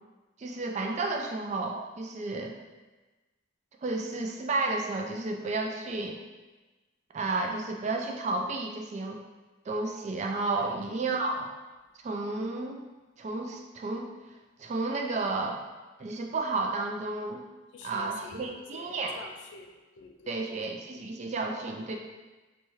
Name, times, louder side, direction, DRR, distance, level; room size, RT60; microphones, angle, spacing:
voice 1, 0.4-2.5 3.8-6.2 7.1-9.2 9.7-11.5 12.0-12.8 13.2-14.1 14.6-15.6 16.0-17.4 17.8-19.2 20.3-22.0, right 3 dB, 35° right, 2 dB, 0.3 m, -32 dB
voice 2, 10.6-11.2 17.7-20.6, left 4 dB, 65° left, 4 dB, 0.4 m, -48 dB
4.1 x 2.3 x 3.1 m, 1.2 s
head